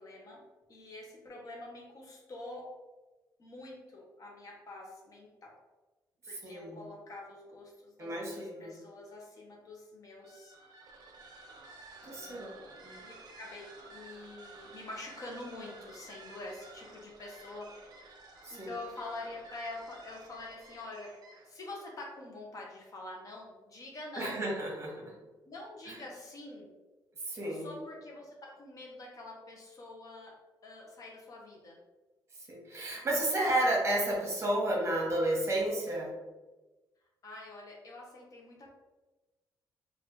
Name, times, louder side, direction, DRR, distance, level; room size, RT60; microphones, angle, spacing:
voice 1, 0.0-2.7 3.4-5.6 6.3-10.5 12.0-17.7 18.5-21.2 21.5-24.5 25.4-26.7 27.5-30.4 30.6-31.8 37.2-38.7, left 2 dB, 45° left, -1 dB, 0.7 m, -46 dB
voice 2, 6.4-6.8 8.0-8.7 12.0-12.5 12.8-13.0 18.4-18.7 24.2-25.1 25.9-26.0 27.2-27.7 32.5-36.1, right 1 dB, 35° right, -2 dB, 1.0 m, -32 dB
sound 1, 10.2-21.6, right 3 dB, 60° right, 0.6 m, -53 dB
3.3 x 2.4 x 2.9 m, 1.2 s
cardioid pair, 105°, 8 cm